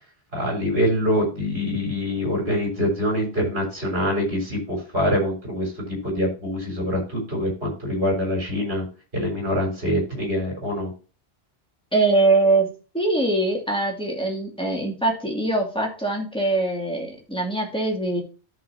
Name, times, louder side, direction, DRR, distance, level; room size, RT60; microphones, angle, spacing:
voice 1, 0.3-8.8 9.1-10.9, equal, 70° right, 1 dB, 4.2 m, -25 dB
voice 2, 11.9-12.7 12.9-18.2, right 2 dB, 5° left, 0 dB, 2.3 m, -22 dB
13.5 x 5.5 x 2.8 m, 0.34 s
omnidirectional pair, 1.1 m